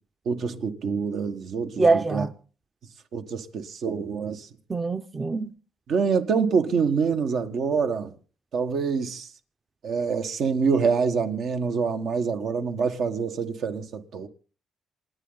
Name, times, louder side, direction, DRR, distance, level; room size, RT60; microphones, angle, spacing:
voice 1, 0.2-2.3 3.1-4.5 5.9-8.1 8.5-9.3 9.8-14.3, right 5 dB, 70° right, 1.7 m, -26 dB
voice 2, 1.8-2.3 4.7-5.5, right 3 dB, 25° right, 0.8 m, -23 dB
27.5 x 9.4 x 4.1 m
cardioid pair, 90°, 0 cm